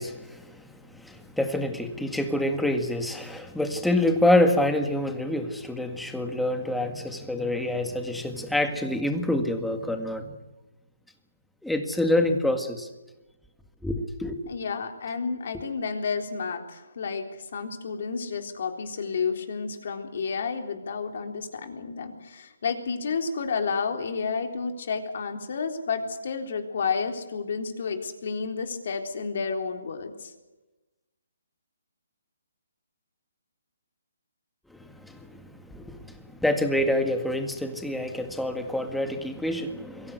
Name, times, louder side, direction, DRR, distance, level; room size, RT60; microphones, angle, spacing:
voice 1, 0.0-10.3 11.6-12.9 13.8-14.4 34.7-40.1, left 1 dB, ahead, 6 dB, 1.9 m, -27 dB
voice 2, 14.5-30.3, left 5 dB, 55° left, 5 dB, 3.8 m, -31 dB
23.5 x 15.5 x 8.1 m, 1.1 s
hypercardioid pair, 155°, 0 cm